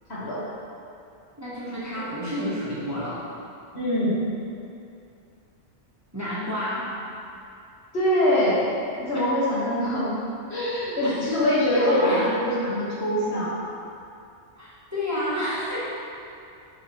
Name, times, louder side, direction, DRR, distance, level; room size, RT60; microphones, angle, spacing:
voice 1, 0.1-0.4 2.0-2.1 3.7-4.2 7.9-8.6 9.0-10.1 10.5-13.5, equal, 60° left, -8 dB, 1.7 m, -23 dB
voice 2, 1.4-3.3 6.1-6.9 11.0-11.1 11.7-12.3 14.6-15.8, left 1 dB, 15° right, -9 dB, 1.1 m, -30 dB
9.1 x 3.8 x 3.0 m, 2.6 s
omnidirectional pair, 1.2 m